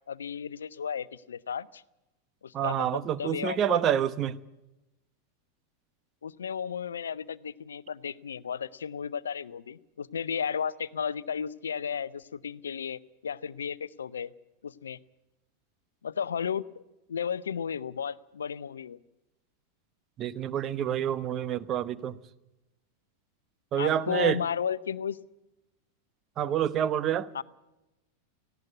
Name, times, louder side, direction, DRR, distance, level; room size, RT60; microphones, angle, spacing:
voice 1, 0.1-1.8 2.4-3.8 6.2-14.3 14.6-15.0 16.0-16.8 17.1-19.0 23.8-25.2 27.3-27.4, left 7 dB, 70° left, 0.7 m, -34 dB
voice 2, 2.5-4.4 20.2-22.2 23.7-24.4 26.4-27.3, right 10 dB, 30° right, 1.1 m, -27 dB
18.5 x 16.5 x 9.5 m
figure-of-eight pair, 90°, 0 cm